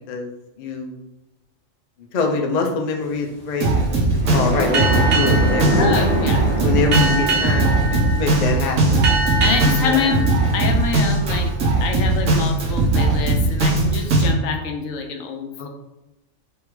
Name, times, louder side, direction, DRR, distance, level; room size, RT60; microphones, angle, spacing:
voice 1, 0.6-1.0 2.0-6.1 6.6-9.1 9.8-10.1 15.6-15.7, left 3 dB, 55° left, 2 dB, 0.4 m, -25 dB
sound 1, 3.5-11.5, equal, 10° right, 1.0 m, -27 dB
Drum kit, 3.6-14.3, right 2 dB, 90° right, 1.3 m, -19 dB
Boat Water vehicle, 4.7-11.8, right 3 dB, 50° right, 1.1 m, -26 dB
voice 2, 5.8-6.5 9.4-10.2 10.5-11.5 11.8-15.7, left 5 dB, 90° left, 4 dB, 1.0 m, -25 dB
3.6 x 3.5 x 3.1 m, 0.94 s
omnidirectional pair, 1.3 m